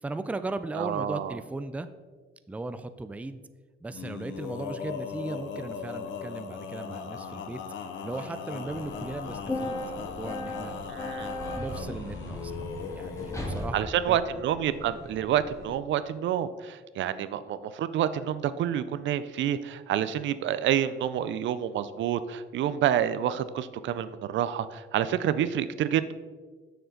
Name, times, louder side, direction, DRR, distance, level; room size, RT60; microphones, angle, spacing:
voice 1, 0.0-1.9 2.5-3.4 3.8-7.6 8.0-10.7 11.6-14.2, right 2 dB, 5° right, 11 dB, 0.4 m, -37 dB
voice 2, 0.7-1.4 10.9-11.3 13.7-26.1, right 10 dB, 70° right, 14 dB, 0.4 m, -28 dB
Male singing, 3.9-13.7, left 6 dB, 70° left, 0.7 m, -38 dB
sound 1, 8.6-15.7, left 1 dB, 15° left, 1.7 m, -37 dB
6.7 x 6.6 x 3.9 m, 1.4 s
cardioid pair, 90°, 20 cm